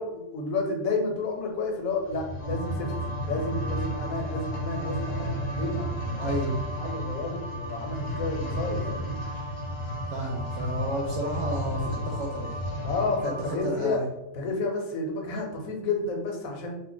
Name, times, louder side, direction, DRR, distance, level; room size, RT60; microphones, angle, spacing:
voice 1, 0.0-2.9 3.2-6.4 6.8-9.2 12.8-14.0 14.4-16.8, left 3 dB, 85° left, 2 dB, 1.1 m, -31 dB
Heavy stone door opens, 2.0-13.3 13.9-14.0, equal, 55° left, 0.7 m, -33 dB
sound 1, 2.4-13.6, equal, 25° right, 0.6 m, -40 dB
voice 2, 6.2-6.6 10.1-12.6 13.2-14.1, right 1 dB, 65° right, -2 dB, 0.8 m, -32 dB
2.4 x 2.1 x 3.8 m, 0.89 s
omnidirectional pair, 1.4 m